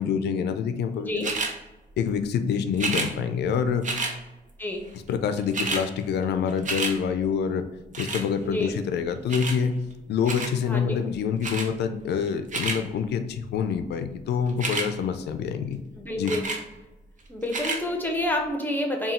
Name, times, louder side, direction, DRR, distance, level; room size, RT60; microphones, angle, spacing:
voice 1, 0.0-1.3 2.0-3.9 5.1-7.6 8.0-9.7 10.1-15.8 16.2-16.3, left 7 dB, 85° left, 9 dB, 0.4 m, -26 dB
voice 2, 1.0-1.3 4.6-4.8 8.4-8.7 10.6-11.0 16.0-16.5 17.3-19.1, left 1 dB, 10° left, 2 dB, 0.9 m, -28 dB
sound 1, 1.2-1.5 2.7-3.1 3.8-4.1 5.1-5.2 5.4-5.8 6.2-6.9 7.9-8.3 9.3-9.6 10.2-10.5 11.4-11.7 12.3-12.8 14.5-14.9 16.3-16.6 17.4-17.8 18.5-18.6, right 3 dB, 50° right, 0.8 m, -29 dB
4.1 x 2.3 x 3.7 m, 1.1 s
cardioid pair, 65°, 17 cm